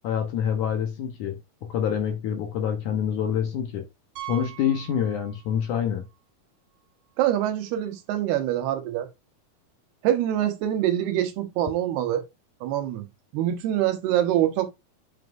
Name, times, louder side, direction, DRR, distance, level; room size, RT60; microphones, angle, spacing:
voice 1, 0.0-3.9 4.3-6.1, left 8 dB, 70° left, 1.9 m, -27 dB
Piano, 4.2-5.8 6.0-6.2 6.8-6.9 7.1-7.2 9.3-9.4, right 15 dB, 70° right, 1.2 m, -41 dB
voice 2, 7.2-9.1 10.0-12.2 12.6-13.1 13.3-14.7, right 12 dB, 90° right, 3.1 m, -25 dB
9.0 x 5.2 x 2.5 m
omnidirectional pair, 4.5 m